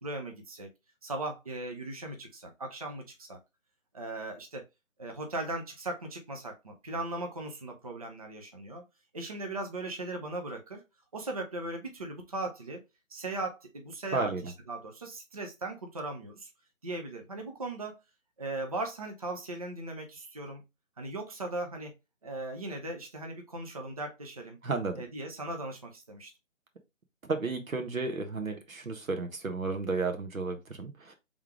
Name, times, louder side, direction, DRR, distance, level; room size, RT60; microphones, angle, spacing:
voice 1, 0.0-0.7 1.0-3.4 3.9-4.6 5.0-8.8 9.1-10.8 11.1-12.8 13.1-16.5 16.8-18.0 18.4-20.6 21.0-21.9 22.2-24.6 25.0-26.3, right 2 dB, 30° right, 3 dB, 0.6 m, -38 dB
voice 2, 24.6-25.0 27.2-31.1, right 4 dB, 85° right, 5 dB, 1.4 m, -33 dB
3.5 x 3.3 x 3.6 m, 0.24 s
figure-of-eight pair, 160°, 40 cm